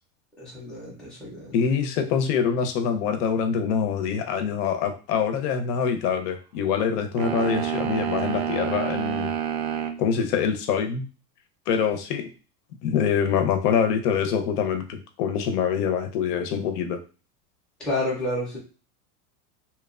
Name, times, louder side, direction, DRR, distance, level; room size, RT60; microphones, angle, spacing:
voice 1, 0.4-1.5 17.8-18.6, left 1 dB, ahead, -7 dB, 0.4 m, -30 dB
voice 2, 1.5-9.3 10.0-11.0 11.7-12.3 12.8-17.0, left 7 dB, 85° left, 7 dB, 0.7 m, -25 dB
sound 1, 7.2-10.0, right 9 dB, 60° right, 0.5 m, -28 dB
2.9 x 2.1 x 2.4 m, 0.34 s
supercardioid pair, 160°, 46 cm